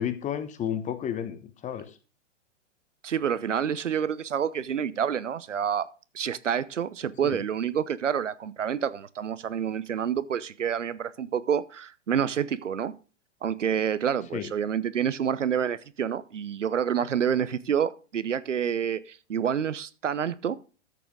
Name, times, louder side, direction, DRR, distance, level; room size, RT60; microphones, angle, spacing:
voice 1, 0.0-1.9 7.2-7.4 14.3-14.5, left 9 dB, 20° left, 1.0 m, -32 dB
voice 2, 3.0-5.9 6.1-12.9 13.4-20.6, right 8 dB, 80° right, 0.8 m, -28 dB
13.5 x 7.0 x 3.8 m
figure-of-eight pair, 110°, 36 cm